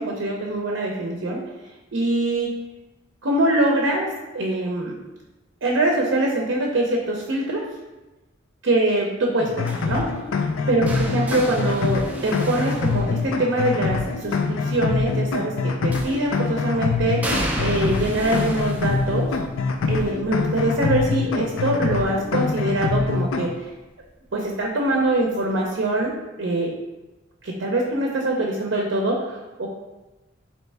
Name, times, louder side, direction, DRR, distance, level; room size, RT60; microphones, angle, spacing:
voice 1, 0.0-1.4 1.9-2.6 3.2-4.9 5.6-7.6 8.6-10.1 10.7-17.2 17.6-19.3 19.8-23.6 24.3-26.7 27.4-29.7, right 1 dB, 65° right, -1 dB, 0.5 m, -23 dB
sound 1, 9.4-23.5, left 4 dB, 90° left, 0.4 m, -25 dB
sound 2, 9.7-13.7 15.9-16.5 17.2-23.0 23.4-23.8 25.0-25.1, right 1 dB, 10° right, 0.3 m, -34 dB
4.2 x 2.8 x 3.3 m, 1.1 s
head